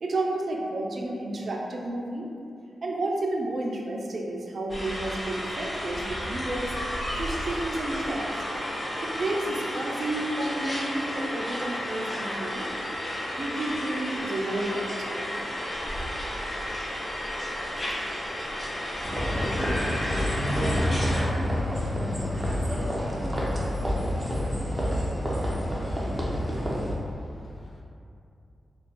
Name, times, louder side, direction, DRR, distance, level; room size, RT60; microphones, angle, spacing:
voice 1, 0.0-2.3 2.8-6.7 7.2-8.3 8.8-12.7 13.4-15.4, right 2 dB, 60° right, 0 dB, 0.4 m, -31 dB
sound 1, 4.7-21.2, equal, 30° left, 0.9 m, -32 dB
sound 2, 19.0-27.0, equal, 10° right, 0.6 m, -28 dB
voice 2, 26.8-27.8, left 1 dB, 70° left, -3 dB, 0.5 m, -56 dB
2.6 x 2.2 x 4.0 m, 2.5 s
cardioid pair, 60°, 0 cm